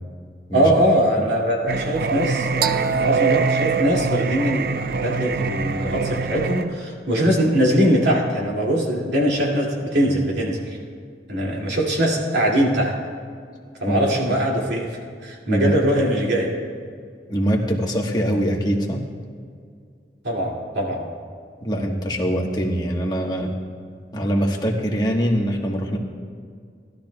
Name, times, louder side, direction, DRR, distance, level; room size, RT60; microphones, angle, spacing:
voice 1, 0.5-10.8 11.3-13.0 13.8-16.5 20.2-21.1, equal, 80° right, -3 dB, 2.3 m, -21 dB
Singing, 1.7-6.6, right 5 dB, 55° right, 0.5 m, -23 dB
voice 2, 13.9-14.2 15.5-15.7 17.3-19.1 21.6-23.5 24.1-26.0, equal, 25° left, 0 dB, 1.3 m, -23 dB
19.0 x 12.5 x 2.3 m, 2.1 s
head